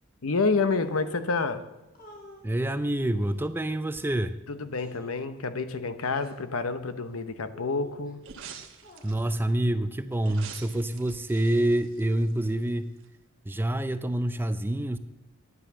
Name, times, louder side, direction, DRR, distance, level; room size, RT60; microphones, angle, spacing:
voice 1, 0.2-1.7 4.5-8.2, left 4 dB, 75° left, 10 dB, 0.9 m, -28 dB
sound 1, 0.7-1.3 1.9-2.4 3.2-4.0 4.8-5.2 6.0-6.4 7.5-8.1 8.8-9.4 10.1-10.9, left 2 dB, 40° left, 2.6 m, -50 dB
voice 2, 2.4-4.4 9.0-12.9 13.5-15.0, right 1 dB, 10° right, 11 dB, 0.4 m, -27 dB
sound 2, 8.2-9.4 10.2-12.7 13.0-13.1, right 6 dB, 65° right, 1.2 m, -46 dB
10.0 x 9.5 x 6.8 m, 1.0 s
head